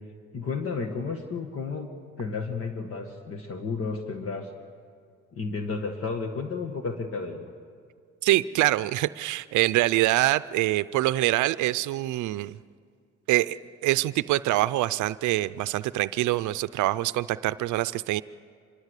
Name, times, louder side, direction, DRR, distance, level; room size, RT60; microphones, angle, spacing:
voice 1, 0.3-1.9 2.2-4.5 5.3-7.5, left 4 dB, 50° left, 4 dB, 1.9 m, -32 dB
voice 2, 8.2-12.6 13.3-13.6 13.8-18.2, right 16 dB, 85° right, 14 dB, 0.5 m, -25 dB
25.5 x 22.5 x 8.2 m, 2.1 s
cardioid pair, 130°, 29 cm